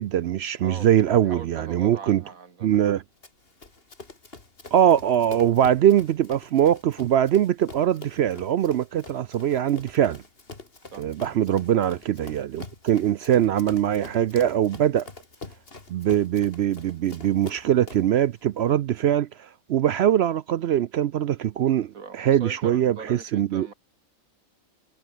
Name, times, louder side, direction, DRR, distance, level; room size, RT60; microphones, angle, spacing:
voice 1, 0.0-2.2 2.6-3.0 4.7-10.2 11.0-15.1 15.9-23.7, right 10 dB, 65° right, 0.7 m, -22 dB
voice 2, 1.2-2.8 10.9-11.1 21.7-23.7, right 5 dB, 80° right, 2.5 m, -41 dB
Run, 3.2-18.2, left 3 dB, 45° left, 2.9 m, -45 dB
omnidirectional pair, 1.4 m